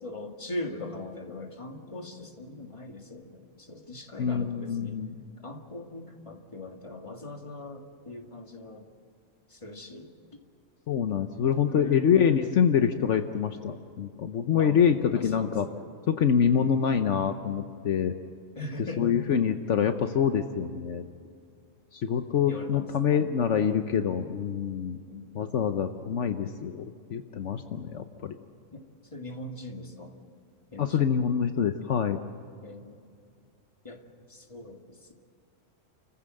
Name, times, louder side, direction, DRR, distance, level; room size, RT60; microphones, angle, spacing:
voice 1, 0.0-5.0 5.4-8.9 9.5-10.1 11.6-12.0 14.6-15.7 18.5-19.1 22.5-23.1 25.1-25.4 28.7-28.8 29.1-30.1 30.7-31.1 32.6-33.0 33.8-35.1, left 2 dB, 25° left, 3 dB, 2.0 m, -41 dB
voice 2, 4.2-5.1 10.9-15.7 16.1-18.1 19.0-21.0 21.9-25.0 25.3-28.4 30.8-32.2, left 7 dB, 70° left, 8 dB, 1.2 m, -26 dB
29.5 x 15.0 x 7.7 m, 2.4 s
omnidirectional pair, 1.3 m